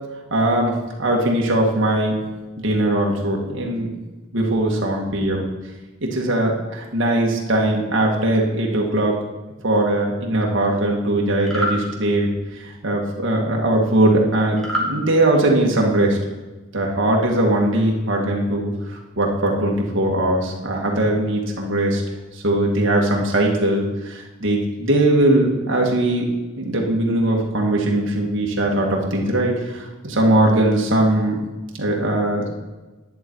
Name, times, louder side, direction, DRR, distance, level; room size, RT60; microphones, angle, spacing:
voice 1, 0.3-0.7 1.0-2.2 2.6-3.9 4.3-5.5 6.0-9.2 9.6-12.3 12.6-16.2 16.7-22.0 22.3-26.3 26.6-31.4 31.8-32.5, right 1 dB, 65° right, -1 dB, 1.9 m, -20 dB
sound 1, 11.4-11.8 14.6-14.9, equal, 5° left, 1.9 m, -24 dB
10.5 x 8.5 x 4.7 m, 1.2 s
head